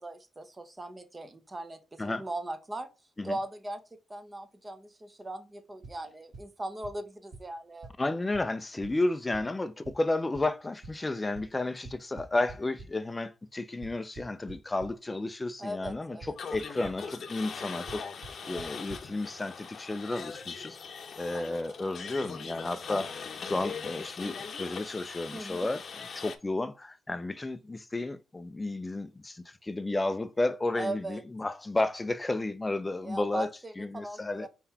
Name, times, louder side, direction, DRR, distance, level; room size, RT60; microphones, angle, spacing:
voice 1, 0.0-2.9 3.2-3.8 4.1-7.9 15.6-16.3 18.4-18.6 21.3-21.6 25.3-25.7 30.8-31.2 33.0-34.5, right 1 dB, 20° right, 0.7 m, -39 dB
sound 1, 5.8-5.9 6.3-6.4 6.8-6.9 7.3-7.4 7.8-7.9 8.3-8.4 8.8-8.9 9.3-9.4 9.8-9.9 10.3-10.4 10.8-10.9 11.3-11.4 11.8-12.8 13.8-14.9 15.8-15.9 16.2-16.6 16.8-16.9 17.9-18.0 18.2-18.3 18.6-18.7 18.9-19.0, right 3 dB, 45° right, 1.5 m, -44 dB
voice 2, 8.0-18.1 18.5-20.8 21.2-23.1 23.4-33.5 33.8-34.5, left 2 dB, 15° left, 0.4 m, -32 dB
sound 2, 16.4-26.4, left 6 dB, 50° left, 0.7 m, -41 dB
4.5 x 3.8 x 2.8 m
cardioid pair, 135°, 0 cm